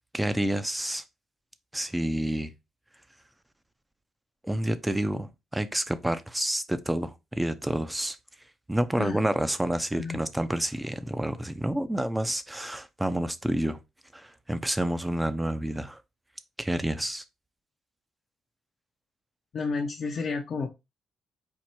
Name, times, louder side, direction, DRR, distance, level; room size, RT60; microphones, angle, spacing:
voice 1, 0.1-1.0 1.7-2.5 4.4-8.2 8.7-13.8 14.1-16.0 16.6-17.2, right 1 dB, 10° right, 0.6 m, -29 dB
voice 2, 9.9-10.3 19.5-20.7, left 4 dB, 55° left, 0.7 m, -31 dB
4.6 x 2.5 x 4.3 m
cardioid pair, 90°, 0 cm